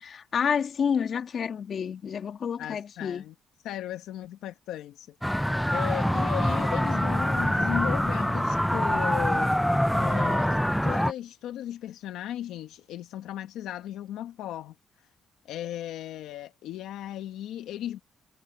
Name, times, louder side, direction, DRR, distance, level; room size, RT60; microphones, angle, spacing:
voice 1, 0.0-3.2, left 7 dB, 55° left, 2.2 m, -29 dB
voice 2, 2.6-3.3 3.6-14.7 15.4-18.0, left 12 dB, 85° left, 1.3 m, -36 dB
sound 1, 5.2-11.1, equal, ahead, 0.5 m, -25 dB
cardioid pair, 90°, 0 cm